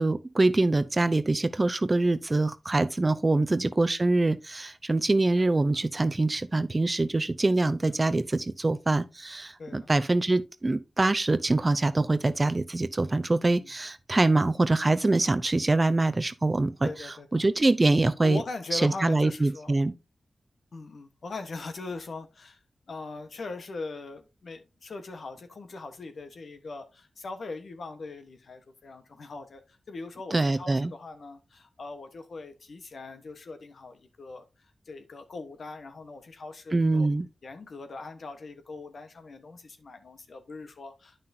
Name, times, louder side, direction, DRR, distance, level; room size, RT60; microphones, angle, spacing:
voice 1, 0.0-18.4 18.7-19.9 30.3-30.9 36.7-37.3, right 2 dB, 35° right, 0.7 m, -24 dB
voice 2, 9.6-9.9 13.5-13.7 16.8-17.5 18.2-19.7 20.7-22.6 22.9-34.4 34.9-37.1 37.4-41.3, left 3 dB, 75° left, 1.2 m, -41 dB
9.3 x 5.8 x 2.7 m
cardioid pair, 55°, 0 cm